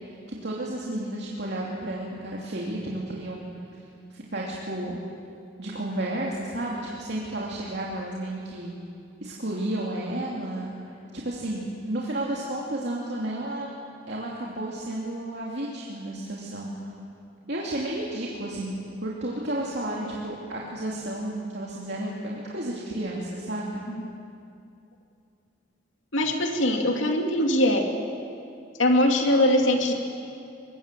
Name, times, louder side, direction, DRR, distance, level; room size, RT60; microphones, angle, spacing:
voice 1, 0.1-3.5 4.1-5.0 5.6-8.7 9.2-10.9 11.2-13.7 14.1-16.9 17.5-18.7 19.0-23.8, right 1 dB, 60° right, -4 dB, 2.8 m, -32 dB
voice 2, 26.1-27.8 28.8-29.9, left 1 dB, 85° left, 2 dB, 2.6 m, -22 dB
24.0 x 22.0 x 7.7 m, 2.6 s
head